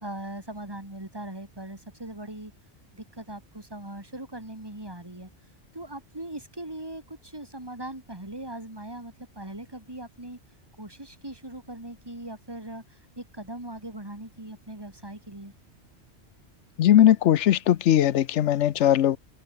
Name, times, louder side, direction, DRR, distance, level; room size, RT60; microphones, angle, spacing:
voice 1, 0.0-2.5 2.9-5.3 5.7-10.4 10.8-15.5, right 1 dB, 20° right, 3.5 m, -40 dB
voice 2, 16.8-19.2, left 11 dB, 80° left, 1.0 m, -19 dB
omnidirectional pair, 1.2 m